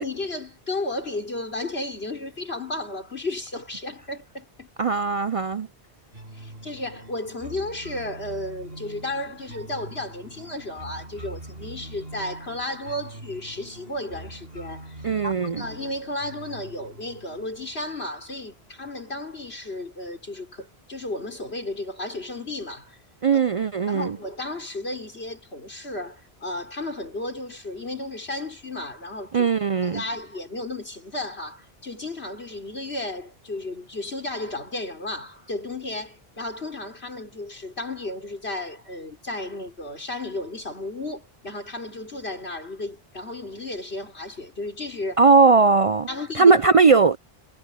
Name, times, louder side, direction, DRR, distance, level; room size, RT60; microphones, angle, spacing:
voice 1, 0.0-4.7 6.3-23.0 23.3-23.4 23.9-29.5 29.8-45.2 46.1-46.6, left 2 dB, 85° left, 5.2 m, -33 dB
voice 2, 4.8-5.7 15.0-15.6 23.2-24.2 29.3-30.0 45.2-46.1 46.3-47.2, right 4 dB, 50° right, 0.4 m, -18 dB
sound 1, 6.1-19.1, right 1 dB, 70° right, 5.5 m, -43 dB
omnidirectional pair, 1.0 m